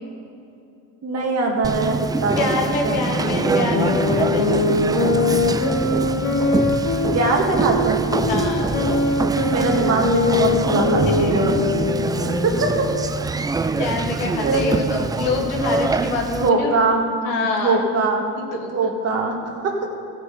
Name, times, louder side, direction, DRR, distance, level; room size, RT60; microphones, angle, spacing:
voice 1, 1.0-2.4 2.8-3.0 7.1-8.0 9.5-11.5 12.2-12.9 13.2-13.3 14.4-14.8 16.4-17.0 17.6-18.2 18.7-19.8, right 3 dB, 40° right, 1 dB, 2.0 m, -22 dB
Conversation, 1.6-16.5, right 4 dB, 10° right, 0.3 m, -24 dB
voice 2, 2.4-4.7 8.3-8.8 11.0-11.5 13.8-16.9 17.2-17.8 18.4-18.7, left 3 dB, 80° left, 2 dB, 1.8 m, -26 dB
sound 1, 3.1-13.2, left 3 dB, 50° left, 1.9 m, -22 dB
15.0 x 5.7 x 6.8 m, 2.6 s
supercardioid pair, 90°, 37 cm